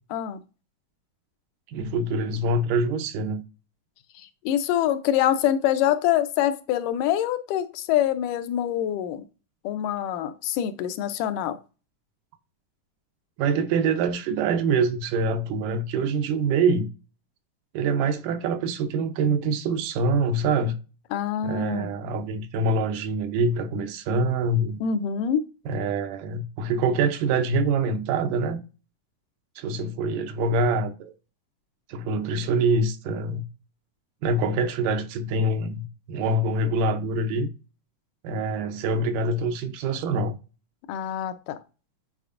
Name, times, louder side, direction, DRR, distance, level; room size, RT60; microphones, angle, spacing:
voice 1, 0.1-0.4 4.2-9.2 9.6-11.6 21.1-21.9 24.8-25.4 40.9-41.6, left 10 dB, 80° left, 2.1 m, -25 dB
voice 2, 1.7-3.4 13.4-16.9 17.7-20.8 21.4-24.8 25.7-28.6 29.6-31.1 31.9-33.4 34.2-37.5 38.2-40.4, right 3 dB, 85° right, 2.3 m, -25 dB
9.0 x 4.2 x 2.5 m
omnidirectional pair, 3.7 m